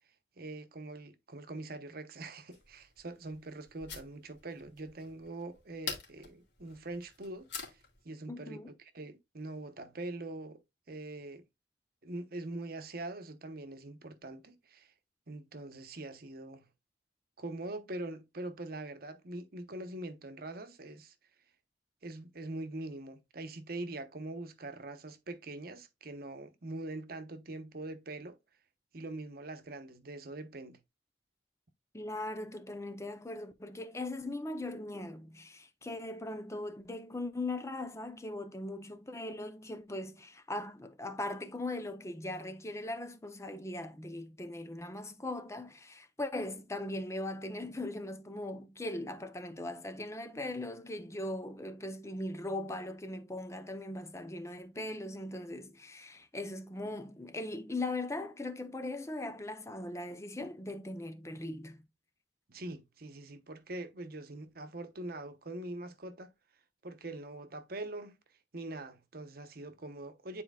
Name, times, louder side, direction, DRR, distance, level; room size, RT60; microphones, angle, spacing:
voice 1, 0.4-7.8 8.0-10.6 10.9-11.4 12.0-14.9 15.3-16.7 17.4-21.1 22.0-28.4 28.9-30.8 62.5-66.3 66.8-68.2 68.5-70.4, right 2 dB, 60° right, 1.0 m, -43 dB
sound 1, 2.5-8.0, left 5 dB, 80° left, 2.7 m, -46 dB
voice 2, 8.3-8.7 31.9-61.9, left 2 dB, 15° left, 0.7 m, -39 dB
9.8 x 4.4 x 2.3 m
head